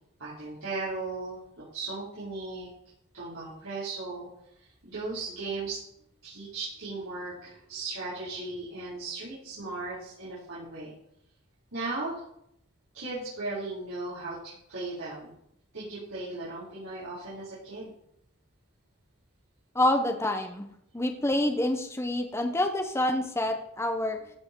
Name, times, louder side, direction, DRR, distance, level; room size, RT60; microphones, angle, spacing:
voice 1, 0.2-1.4 1.7-2.7 3.1-4.3 4.8-5.8 6.2-10.9 11.7-12.2 12.9-15.3 15.7-17.9, right 3 dB, 75° right, -11 dB, 4.7 m, -36 dB
voice 2, 19.7-20.7 20.9-24.2, left 1 dB, 15° left, 4 dB, 1.0 m, -27 dB
14.5 x 6.2 x 4.7 m, 0.73 s
head